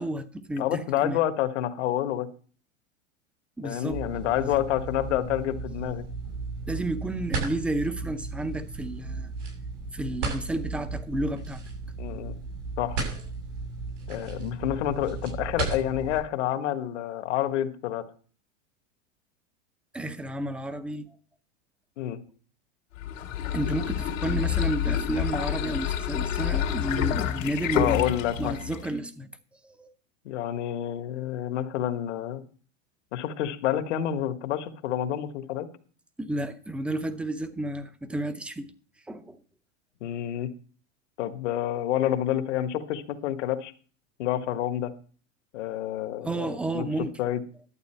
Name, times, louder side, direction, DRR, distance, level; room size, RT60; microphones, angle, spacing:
voice 1, 0.0-1.2 3.6-4.0 4.4-4.6 6.7-9.3 9.9-11.6 19.9-21.1 23.5-28.1 28.4-29.3 29.7-29.9 36.2-38.7 39.1-39.4 46.2-47.1, right 1 dB, 5° right, 0.6 m, -31 dB
voice 2, 0.6-2.3 3.6-6.0 12.0-12.3 12.8-13.0 14.1-18.0 22.0-22.2 27.7-28.5 30.2-32.4 33.1-35.7 40.0-40.5 41.2-43.7 44.2-44.9 45.5-47.4, left 11 dB, 65° left, 1.5 m, -28 dB
sound 1, 3.9-16.2, right 3 dB, 85° right, 7.0 m, -35 dB
sound 2, 22.9-29.0, left 10 dB, 85° left, 2.1 m, -28 dB
12.0 x 8.2 x 4.4 m
supercardioid pair, 145°, 38 cm